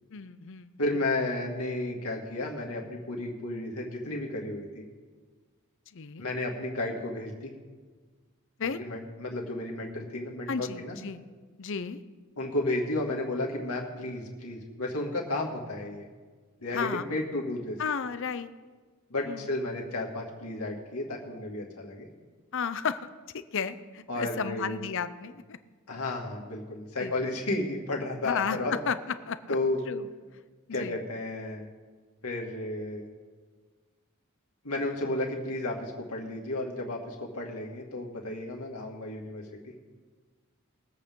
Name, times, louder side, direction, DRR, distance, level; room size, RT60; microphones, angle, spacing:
voice 1, 0.1-0.8 5.9-6.3 8.6-8.8 10.5-11.2 11.6-12.0 16.7-17.1 17.8-18.5 19.3-19.5 22.5-23.0 23.3-25.6 27.0-27.1 28.2-29.0 29.3-29.6 29.9-30.1 30.7-31.0, left 6 dB, 60° left, 13 dB, 0.6 m, -33 dB
voice 2, 0.8-4.8 6.2-7.5 8.8-11.0 12.4-16.1 16.6-17.8 19.1-22.1 24.1-24.8 25.9-28.8 29.5-29.8 30.7-31.7 32.2-33.1 34.6-39.7, left 2 dB, 85° left, -1 dB, 2.3 m, -33 dB
21.5 x 8.3 x 3.8 m, 1.4 s
head